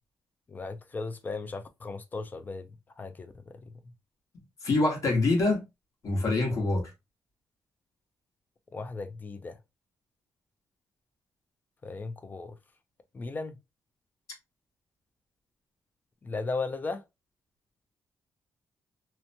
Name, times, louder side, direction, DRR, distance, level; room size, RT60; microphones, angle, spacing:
voice 1, 0.5-2.7 3.0-3.6 8.7-9.6 11.8-12.6 13.1-13.6 16.2-17.0, left 3 dB, 30° left, 0.4 m, -36 dB
voice 2, 4.6-5.6 6.0-6.9, left 2 dB, 60° left, 1.2 m, -25 dB
2.8 x 2.1 x 2.6 m
cardioid pair, 115°, 6 cm